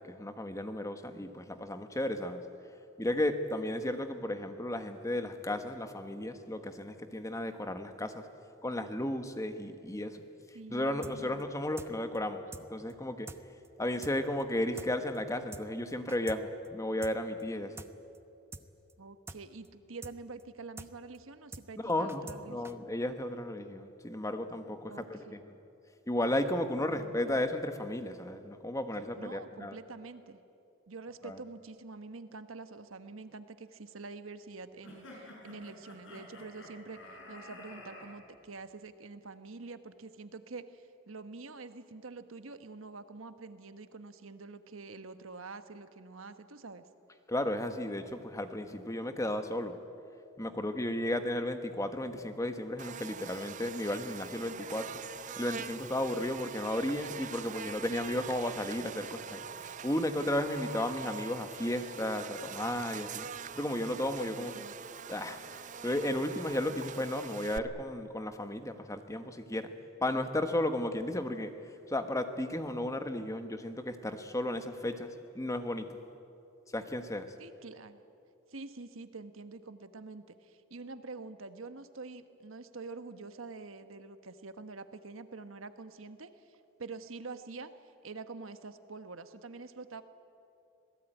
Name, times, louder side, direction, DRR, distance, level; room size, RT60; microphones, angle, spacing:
voice 1, 0.0-2.4 3.0-8.2 8.6-10.2 10.7-13.3 13.8-17.8 21.8-25.4 26.1-29.8 31.2-31.4 47.3-49.8 50.4-55.0 55.4-63.3 63.6-64.5 65.1-69.7 70.0-71.5 71.9-75.9 76.7-77.3, left 1 dB, 15° left, 8 dB, 1.3 m, -34 dB
voice 2, 10.5-11.4 19.0-22.8 24.9-25.3 26.9-27.4 29.1-30.4 30.9-46.9 64.4-64.7 66.7-66.8 77.4-78.0 78.5-90.0, right 3 dB, 80° right, 10 dB, 1.2 m, -46 dB
sound 1, 11.0-11.1 11.4-11.5 11.8-11.9 12.1-12.2 12.5-12.6 12.9-13.0 13.3-13.4 13.6-13.7 14.0-14.1 14.4-14.5 14.8-14.9 15.1-15.2 15.5-15.6 15.9-16.4 16.6-16.7 17.0-17.1 17.4-17.5 17.8-17.9 18.1-18.2 18.5-18.6 18.9-19.0 19.3-19.4 19.6-19.7 20.0-20.1 20.4-20.5 20.8-20.9 21.1-21.2 21.5-21.6 21.9-22.4 22.6-22.7, right 2 dB, 15° right, 0.8 m, -45 dB
sound 2, 34.8-38.1, left 1 dB, 65° left, 6.3 m, -50 dB
Buzz, 52.8-67.6, right 7 dB, 40° right, 0.5 m, -44 dB
26.0 x 18.0 x 9.2 m, 2.7 s
head